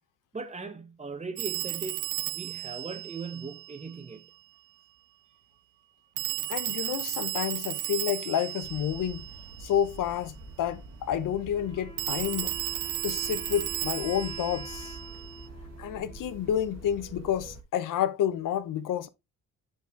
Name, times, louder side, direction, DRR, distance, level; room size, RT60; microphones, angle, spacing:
voice 1, 0.3-4.2, right 4 dB, 20° right, 1.3 m, -39 dB
Telephone, 1.4-4.0 6.2-9.8 12.0-15.5, right 18 dB, 70° right, 0.5 m, -34 dB
voice 2, 6.5-9.3 9.6-12.6 13.0-15.0 15.8-19.1, left 10 dB, 70° left, 0.9 m, -30 dB
sound 1, 8.6-17.6, right 3 dB, 50° right, 1.8 m, -46 dB
Wind instrument woodwind instrument, 11.5-17.0, left 1 dB, 20° left, 1.4 m, -46 dB
6.9 x 4.7 x 3.3 m
supercardioid pair, 70°, 33 cm